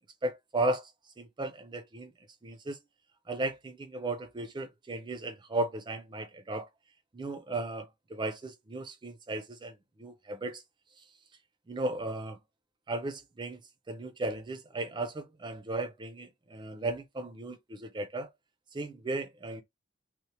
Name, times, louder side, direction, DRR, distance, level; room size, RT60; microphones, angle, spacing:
voice 1, 0.2-0.9 1.2-2.1 2.4-2.8 3.3-6.7 7.1-10.6 11.7-12.4 12.9-13.6 13.9-18.3 18.7-19.6, right 2 dB, 25° right, 0.4 m, -35 dB
2.9 x 2.0 x 2.7 m
head